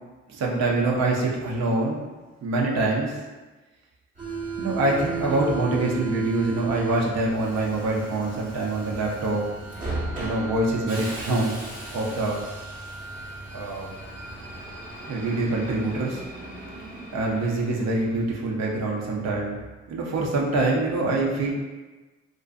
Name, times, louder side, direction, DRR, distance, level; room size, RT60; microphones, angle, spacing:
voice 1, 0.3-2.0 2.4-3.2 4.6-9.4 10.2-11.6 11.9-12.4 13.5-13.9 15.1-16.2 17.1-19.6 19.9-21.5, right 2 dB, 60° right, -2 dB, 0.6 m, -25 dB
Subway metro underground, 4.2-18.5, right 3 dB, 25° right, 0.8 m, -36 dB
2.5 x 2.3 x 2.3 m, 1.2 s
cardioid pair, 90°, 30 cm